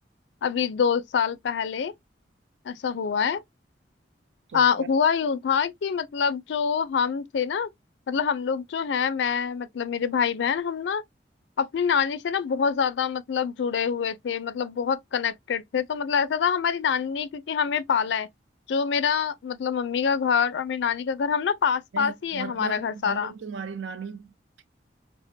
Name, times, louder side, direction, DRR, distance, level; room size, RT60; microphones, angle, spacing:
voice 1, 0.4-1.9 2.7-3.4 4.5-7.7 8.1-11.0 11.6-18.3 18.7-23.3, left 6 dB, 70° left, 0.4 m, -25 dB
voice 2, 4.5-4.9 21.9-24.6, right 5 dB, 80° right, 0.5 m, -37 dB
3.5 x 2.0 x 2.6 m
head